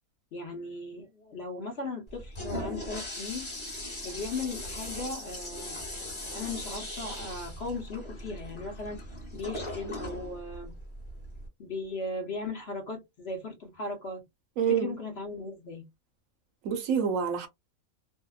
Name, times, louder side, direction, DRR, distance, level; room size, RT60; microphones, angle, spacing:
voice 1, 0.3-3.5 4.0-5.8 6.3-9.0 9.3-10.7 11.6-14.2 14.7-15.9, left 3 dB, 55° left, 0.8 m, -37 dB
Toilet flush, 2.1-11.5, left 1 dB, 20° left, 1.1 m, -39 dB
voice 2, 14.6-14.9 16.6-17.5, right 7 dB, 70° right, 0.9 m, -27 dB
2.7 x 2.0 x 2.2 m
omnidirectional pair, 1.5 m